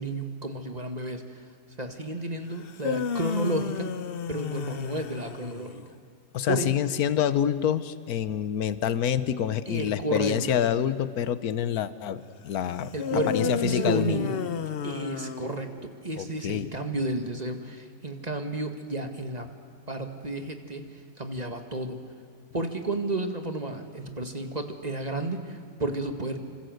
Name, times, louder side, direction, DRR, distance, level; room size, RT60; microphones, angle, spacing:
voice 1, 0.0-1.5 1.8-3.9 4.3-5.8 6.5-6.7 9.7-10.6 12.9-14.4 14.8-15.7 16.0-19.5 19.9-20.8 21.2-22.0 22.5-26.4, right 2 dB, 25° right, 6 dB, 2.0 m, -32 dB
sound 1, 2.6-5.8 13.0-15.9, left 7 dB, 50° left, 0.8 m, -32 dB
voice 2, 6.3-12.9 13.3-14.2 16.2-16.7, left 9 dB, 75° left, 14 dB, 1.4 m, -27 dB
27.5 x 25.0 x 8.0 m, 2.3 s
omnidirectional pair, 1.6 m